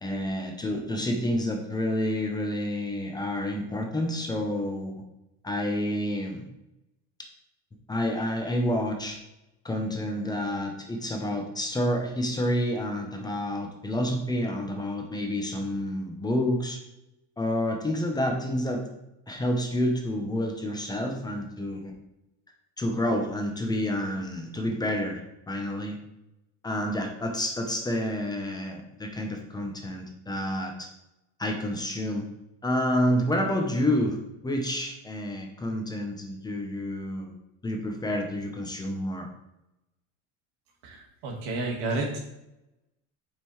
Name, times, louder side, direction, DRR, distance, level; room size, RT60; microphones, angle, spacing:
voice 1, 0.0-5.0 5.4-6.5 7.9-9.2 9.6-16.8 17.4-18.9 19.3-21.9 22.8-26.0 26.6-30.9 31.4-32.3 32.6-34.2 34.4-37.3 37.6-39.3, left 1 dB, 10° left, 2 dB, 0.8 m, -29 dB
voice 2, 40.8-42.2, right 2 dB, 85° right, 1 dB, 1.8 m, -31 dB
7.4 x 5.7 x 3.2 m, 0.89 s
cardioid pair, 150°, 35 cm